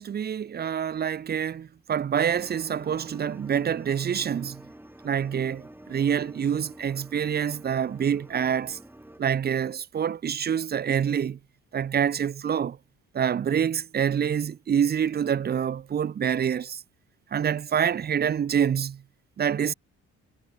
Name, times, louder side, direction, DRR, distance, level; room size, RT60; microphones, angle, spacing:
voice 1, 0.0-4.6 5.0-8.8 9.2-11.4 11.7-12.8 13.1-16.8 17.3-19.0 19.4-19.7, right 8 dB, 35° right, 0.5 m, -26 dB
sound 1, 2.3-9.2, right 1 dB, 5° right, 4.4 m, -47 dB
cardioid pair, 90°, 30 cm